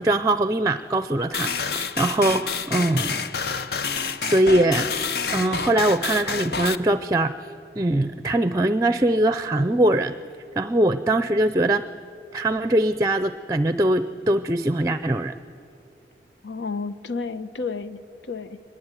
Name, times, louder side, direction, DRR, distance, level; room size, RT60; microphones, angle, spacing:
voice 1, 0.0-3.2 4.2-5.1 5.3-7.3 7.8-10.2 10.6-11.9 12.3-15.4, right 1 dB, 20° right, 13 dB, 0.5 m, -22 dB
sound 1, 1.3-6.8, left 5 dB, 60° left, 0.8 m, -28 dB
voice 2, 16.4-18.6, left 4 dB, 90° left, 12 dB, 0.9 m, -31 dB
23.5 x 20.5 x 9.7 m, 2.4 s
head